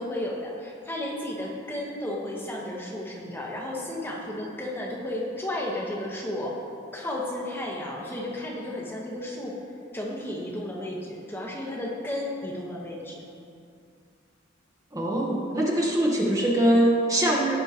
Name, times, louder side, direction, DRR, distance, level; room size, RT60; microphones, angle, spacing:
voice 1, 0.0-6.6 6.9-9.6 9.9-13.2, left 1 dB, 10° left, -3 dB, 1.1 m, -33 dB
voice 2, 14.9-17.6, right 1 dB, 15° right, -2 dB, 1.0 m, -22 dB
16.5 x 6.2 x 2.9 m, 2.4 s
head